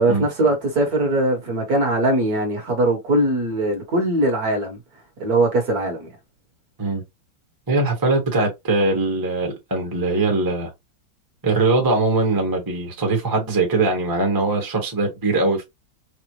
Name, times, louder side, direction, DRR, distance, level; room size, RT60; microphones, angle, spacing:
voice 1, 0.0-4.8 5.2-6.1, right 1 dB, 50° right, 1.5 m, -21 dB
voice 2, 7.7-10.7 11.4-15.6, right 2 dB, 15° right, 0.7 m, -21 dB
5.0 x 2.1 x 3.0 m
omnidirectional pair, 2.3 m